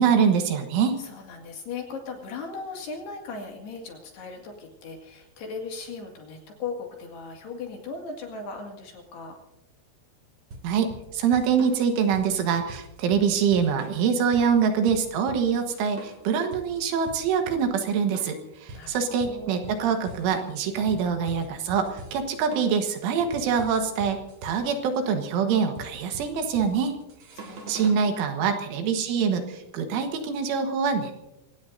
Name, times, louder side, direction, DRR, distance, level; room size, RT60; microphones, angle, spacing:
voice 1, 0.0-1.0 10.6-10.9 11.1-18.4 18.6-26.9 27.7-31.2, right 6 dB, 75° right, 5 dB, 3.6 m, -24 dB
voice 2, 1.0-9.4 18.7-19.8 27.3-28.7, left 4 dB, 60° left, 1 dB, 3.7 m, -38 dB
sound 1, 10.5-28.1, right 2 dB, 45° right, 2.6 m, -44 dB
25.5 x 17.5 x 2.7 m, 0.93 s
omnidirectional pair, 6.0 m